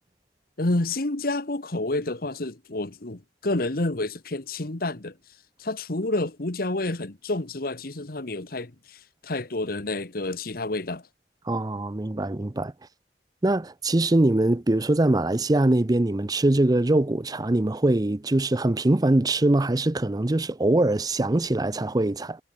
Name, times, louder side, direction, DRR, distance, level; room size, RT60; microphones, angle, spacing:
voice 1, 0.6-5.1 5.6-11.0, left 2 dB, 55° left, 1.5 m, -29 dB
voice 2, 11.5-12.7 13.4-22.4, right 2 dB, 20° right, 0.6 m, -22 dB
head